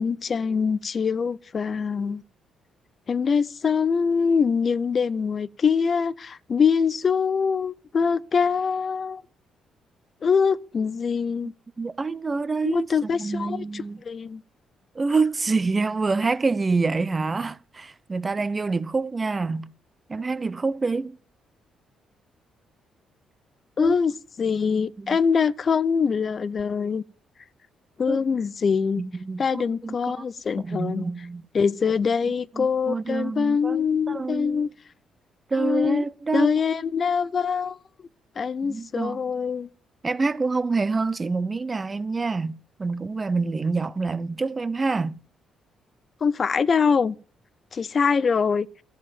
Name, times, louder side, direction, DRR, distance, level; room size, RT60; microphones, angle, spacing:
voice 1, 0.0-2.2 3.1-9.2 10.2-11.5 12.6-14.4 23.8-24.1 24.4-27.0 28.0-29.0 29.4-31.1 31.5-34.7 35.6-36.0 36.3-37.8 38.4-39.7 46.2-47.1 47.7-48.7, left 6 dB, 45° left, 0.5 m, -24 dB
voice 2, 11.8-14.0 14.9-19.7 20.1-21.2 23.8-24.0 25.0-25.2 28.1-28.2 29.0-30.2 30.6-31.4 32.6-34.7 35.5-36.6 38.6-39.2 40.0-45.2, right 4 dB, 25° right, 0.6 m, -27 dB
13.5 x 7.6 x 7.1 m
cardioid pair, 90°, 0 cm